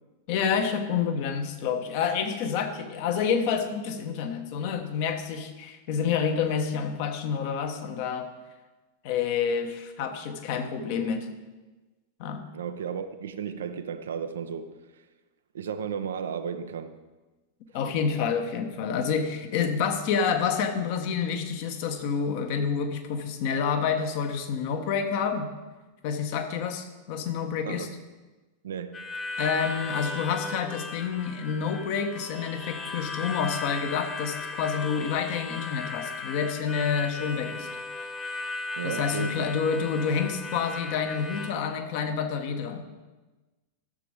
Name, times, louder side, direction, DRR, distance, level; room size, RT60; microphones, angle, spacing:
voice 1, 0.3-8.3 9.0-11.3 12.2-12.4 17.7-25.5 26.0-27.9 29.4-37.7 38.8-42.9, left 6 dB, 45° left, 1.2 m, -28 dB
voice 2, 12.5-15.0 15.5-17.0 27.6-27.9 28.6-29.1 38.8-39.5, right 7 dB, 65° right, 0.7 m, -34 dB
Harmonica, 28.9-41.5, left 3 dB, 20° left, 1.4 m, -36 dB
12.5 x 7.2 x 4.8 m
figure-of-eight pair, 90°, 0 cm